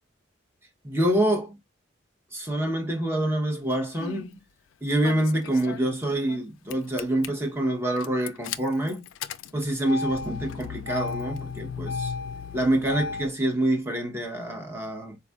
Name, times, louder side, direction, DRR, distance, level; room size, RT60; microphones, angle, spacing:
voice 1, 0.8-1.6 2.3-4.4 4.8-9.1 9.5-12.1 12.5-15.2, right 1 dB, 15° right, 0.7 m, -26 dB
Engine starting, 3.7-4.3 5.0-6.4 6.7-7.3 8.0-13.3, left 5 dB, 80° left, 0.3 m, -35 dB
4.3 x 2.3 x 2.2 m
head